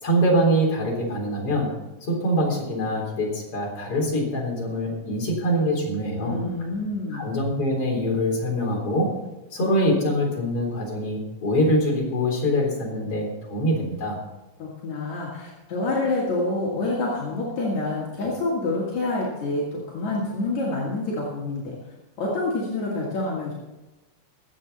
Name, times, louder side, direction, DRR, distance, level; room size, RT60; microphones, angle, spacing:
voice 1, 0.0-1.7 2.1-6.4 7.1-9.1 9.5-14.2, equal, 50° left, -2 dB, 4.8 m, -24 dB
voice 2, 6.2-7.3 14.6-21.8 22.2-23.5, left 2 dB, 70° left, -5 dB, 3.6 m, -27 dB
23.0 x 8.3 x 4.2 m, 1.1 s
omnidirectional pair, 3.4 m